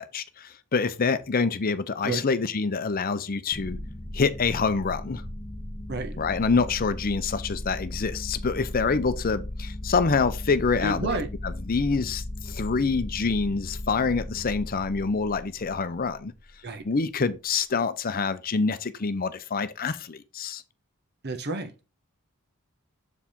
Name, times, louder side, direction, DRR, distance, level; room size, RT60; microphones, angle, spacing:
voice 1, 0.0-3.8 4.1-5.2 6.2-11.2 11.4-16.3 16.8-20.6, left 4 dB, 40° left, 0.6 m, -26 dB
sound 1, 3.5-16.4, left 1 dB, 10° left, 1.1 m, -37 dB
voice 2, 10.8-11.3 16.6-16.8 21.2-21.7, right 2 dB, 50° right, 1.2 m, -30 dB
7.0 x 4.8 x 3.7 m
head